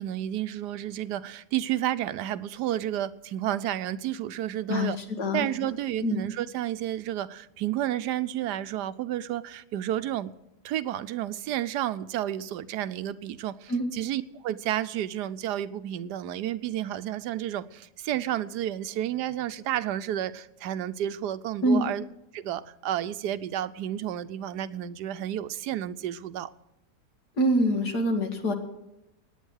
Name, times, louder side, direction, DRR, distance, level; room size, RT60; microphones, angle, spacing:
voice 1, 0.0-5.0 5.3-10.3 10.6-22.1 22.3-26.5, right 12 dB, 90° right, 1.3 m, -31 dB
voice 2, 27.4-28.5, equal, 85° left, 2.6 m, -24 dB
17.5 x 9.7 x 6.3 m
omnidirectional pair, 1.7 m